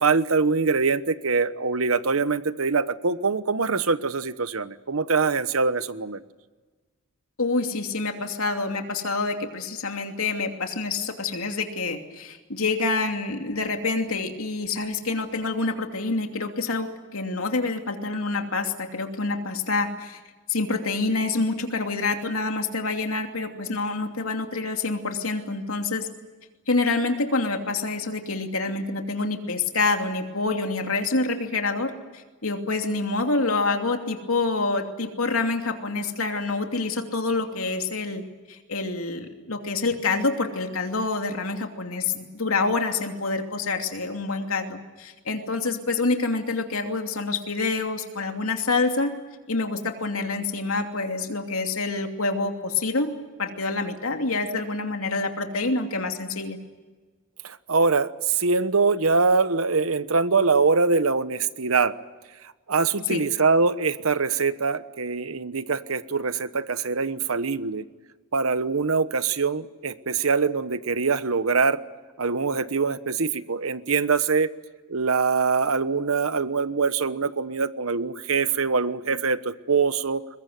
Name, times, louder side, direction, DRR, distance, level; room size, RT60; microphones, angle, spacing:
voice 1, 0.0-6.2 57.4-61.9 62.7-67.8 68.3-71.8 72.2-74.5 74.9-80.2, right 4 dB, 85° right, 13 dB, 1.1 m, -23 dB
voice 2, 7.4-20.2 20.5-26.1 26.7-38.2 38.5-49.2 49.5-53.1 53.4-56.6 63.1-63.2, left 3 dB, 90° left, 4 dB, 2.8 m, -27 dB
22.0 x 22.0 x 9.4 m, 1.3 s
head